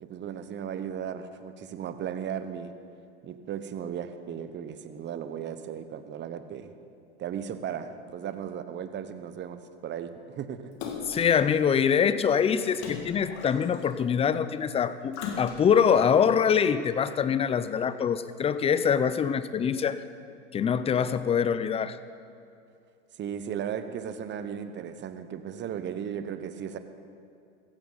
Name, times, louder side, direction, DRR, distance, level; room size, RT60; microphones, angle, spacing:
voice 1, 0.0-2.7 3.2-6.7 7.2-10.7 19.0-19.2 23.2-26.8, right 8 dB, 30° right, 10 dB, 1.0 m, -36 dB
Splash splatter, 10.8-11.4 12.7-14.0 15.1-15.9 16.5-16.6, left 5 dB, 55° left, 2.2 m, -37 dB
voice 2, 11.1-20.0 20.5-22.0, left 7 dB, 15° left, 13 dB, 0.5 m, -24 dB
16.5 x 15.0 x 4.0 m, 2.5 s
hypercardioid pair, 100°, 35 cm